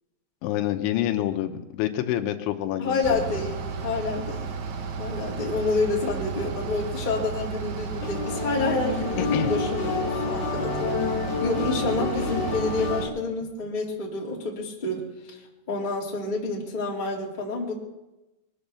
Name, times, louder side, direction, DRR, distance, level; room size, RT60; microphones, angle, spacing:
voice 1, 0.4-3.2 9.3-9.5, left 13 dB, 80° left, 7 dB, 3.2 m, -27 dB
voice 2, 2.8-4.5 5.0-10.0 10.2-10.9 11.4-15.4 15.7-17.7, left 3 dB, 15° left, -3 dB, 1.5 m, -28 dB
Bus / Idling, 3.0-13.0, right 5 dB, 80° right, 1.7 m, -33 dB
sound 1, 8.0-13.1, left 5 dB, 65° left, 2.9 m, -29 dB
22.5 x 9.0 x 6.9 m, 1.0 s
omnidirectional pair, 5.5 m